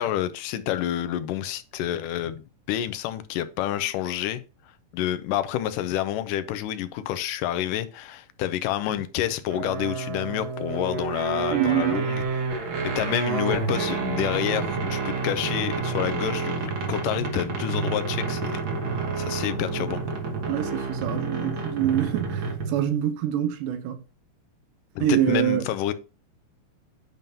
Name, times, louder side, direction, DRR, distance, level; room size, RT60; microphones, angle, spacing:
voice 1, 0.0-4.4 4.9-12.6 13.0-20.0 25.0-25.9, left 12 dB, 85° left, 2.2 m, -29 dB
sound 1, 9.5-22.9, right 4 dB, 55° right, 1.4 m, -29 dB
voice 2, 11.5-12.1 20.5-24.0 25.0-25.7, right 11 dB, 85° right, 2.4 m, -25 dB
9.1 x 5.3 x 2.8 m
omnidirectional pair, 3.8 m